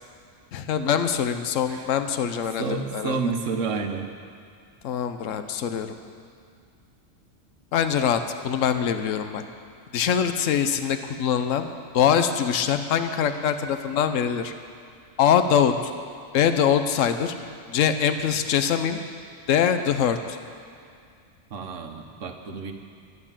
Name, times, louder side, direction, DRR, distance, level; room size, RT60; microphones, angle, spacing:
voice 1, 0.5-3.2 4.8-5.9 7.7-9.4 9.9-11.7 11.9-14.5 15.2-15.7 16.3-17.3 17.7-19.0 19.5-20.4, left 8 dB, 75° left, 9 dB, 1.1 m, -23 dB
voice 2, 2.6-4.1 21.5-22.7, right 4 dB, 70° right, 5 dB, 1.4 m, -29 dB
12.0 x 11.0 x 7.3 m, 2.3 s
omnidirectional pair, 1.3 m